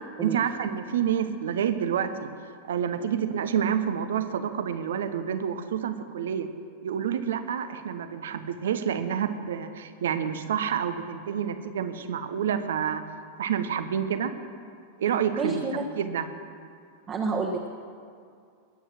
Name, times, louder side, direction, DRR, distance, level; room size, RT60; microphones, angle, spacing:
voice 1, 0.2-2.3 2.7-6.5 6.8-13.0 13.4-14.3 15.0-15.6 16.0-16.3, right 8 dB, 60° right, 11 dB, 1.0 m, -28 dB
voice 2, 15.4-15.8 17.1-17.7, right 4 dB, 30° right, 0 dB, 1.4 m, -29 dB
21.0 x 9.2 x 6.2 m, 2.2 s
figure-of-eight pair, 90°, 0 cm